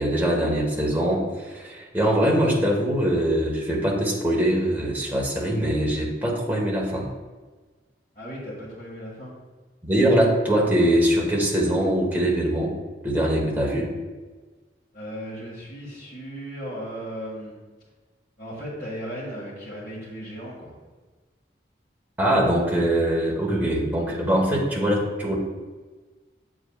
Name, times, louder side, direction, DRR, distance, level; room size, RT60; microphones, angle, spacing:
voice 1, 0.0-7.0 9.8-12.7 13.0-13.9 22.2-25.3, right 1 dB, 10° right, -3 dB, 1.2 m, -22 dB
voice 2, 8.1-9.3 14.9-17.5 18.4-20.7, equal, 50° left, -7 dB, 1.8 m, -36 dB
7.9 x 7.0 x 2.4 m, 1.3 s
head